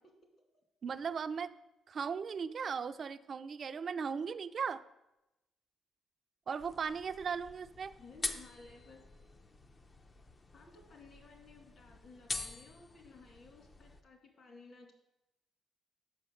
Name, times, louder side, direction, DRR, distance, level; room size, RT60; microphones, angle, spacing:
voice 1, 0.8-1.5 1.9-4.8 6.5-7.9, right 6 dB, 50° right, 11 dB, 0.4 m, -37 dB
sound 1, 6.6-14.0, left 3 dB, 30° left, 0.5 m, -45 dB
voice 2, 8.0-9.0 10.5-14.9, left 3 dB, 55° left, 1 dB, 2.2 m, -56 dB
6.5 x 5.6 x 6.4 m, 0.92 s
cardioid pair, 90°, 0 cm